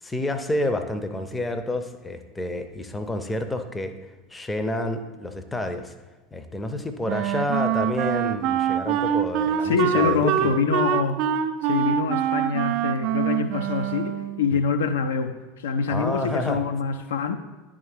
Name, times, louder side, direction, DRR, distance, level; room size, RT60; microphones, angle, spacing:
voice 1, 0.0-3.9 4.3-5.9 6.3-10.5 14.5-14.6 15.9-16.6, left 1 dB, 10° left, 0.5 m, -29 dB
Wind instrument woodwind instrument, 7.1-14.5, right 10 dB, 50° right, 0.3 m, -25 dB
voice 2, 9.6-11.2 11.6-17.4, left 5 dB, 65° left, 0.3 m, -25 dB
10.5 x 3.6 x 3.3 m
figure-of-eight pair, 75°, 0 cm